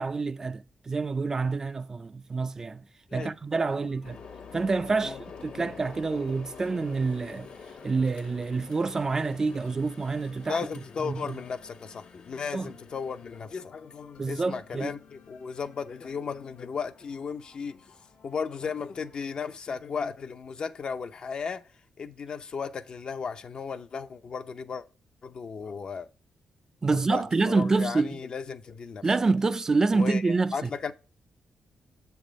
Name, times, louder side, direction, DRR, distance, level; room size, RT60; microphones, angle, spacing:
voice 1, 0.0-2.8 3.1-4.2 4.5-7.5 7.8-10.7 11.0-11.4 12.5-12.7 14.2-14.9 26.8-28.2 29.0-30.9, right 3 dB, 25° right, 0.3 m, -27 dB
sound 1, 3.7-19.6, left 6 dB, 75° left, 0.9 m, -56 dB
sound 2, 4.0-13.5, left 5 dB, 90° left, 1.2 m, -47 dB
voice 2, 10.5-17.8 18.2-21.6 22.0-24.8 25.2-26.1 26.9-29.0 29.9-30.9, left 5 dB, 45° left, 0.5 m, -35 dB
7.4 x 3.5 x 5.1 m
wide cardioid pair, 150°, 2 cm